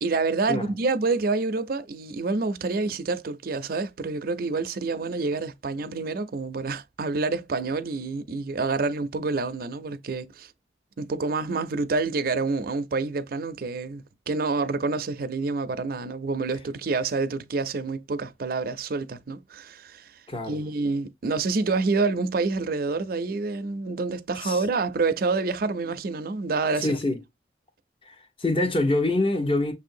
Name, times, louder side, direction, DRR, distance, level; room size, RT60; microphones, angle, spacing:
voice 1, 0.0-10.5 11.0-20.1 20.5-26.9, right 3 dB, 55° right, 0.5 m, -27 dB
voice 2, 20.3-20.6 24.4-24.6 26.8-27.2 28.1-29.7, left 2 dB, 30° left, 0.9 m, -25 dB
6.6 x 2.7 x 2.6 m
head